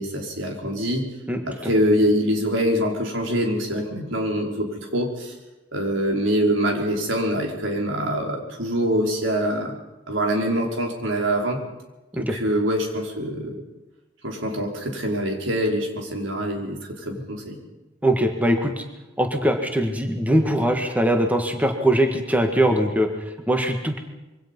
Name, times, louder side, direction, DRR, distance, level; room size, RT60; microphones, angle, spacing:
voice 1, 0.0-1.1 1.5-5.3 5.7-9.8 10.1-11.6 12.2-13.6 14.2-17.6, equal, 80° right, 1 dB, 4.8 m, -24 dB
voice 2, 1.3-1.7 12.1-12.4 18.0-18.8 19.2-24.0, right 1 dB, 10° right, 4 dB, 1.8 m, -22 dB
26.0 x 24.0 x 5.5 m, 1.1 s
head